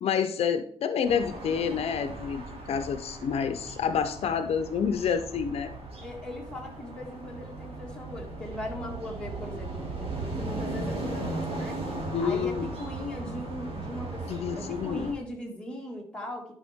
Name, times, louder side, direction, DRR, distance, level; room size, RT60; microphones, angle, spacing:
voice 1, 0.0-5.7 12.1-12.7 14.3-15.1, left 7 dB, 65° left, 8 dB, 0.6 m, -28 dB
sound 1, 1.0-15.1, right 2 dB, 60° right, 2.5 m, -37 dB
voice 2, 6.0-11.8 12.2-16.5, left 1 dB, 10° left, -2 dB, 1.8 m, -39 dB
11.5 x 5.6 x 3.5 m, 0.63 s
wide cardioid pair, 160°, 11 cm